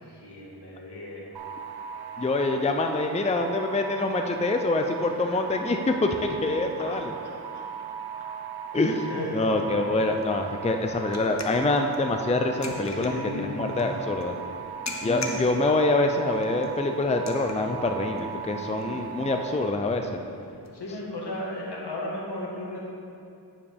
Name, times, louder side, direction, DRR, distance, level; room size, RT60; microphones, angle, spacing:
voice 1, 0.0-1.3 2.2-2.3 5.0-5.4 6.8-7.6 9.1-9.7 12.7-13.9 15.0-15.5 18.7-19.1 20.7-22.9, left 1 dB, 75° left, -4 dB, 1.7 m, -36 dB
sound 1, 1.3-19.7, right 7 dB, 65° right, 0.7 m, -38 dB
voice 2, 2.2-7.1 8.7-14.3 15.0-20.2, left 2 dB, 15° left, 5 dB, 0.4 m, -25 dB
sound 2, 9.4-20.7, left 2 dB, 40° left, 0.9 m, -44 dB
9.5 x 7.4 x 3.5 m, 2.5 s
wide cardioid pair, 55°, 41 cm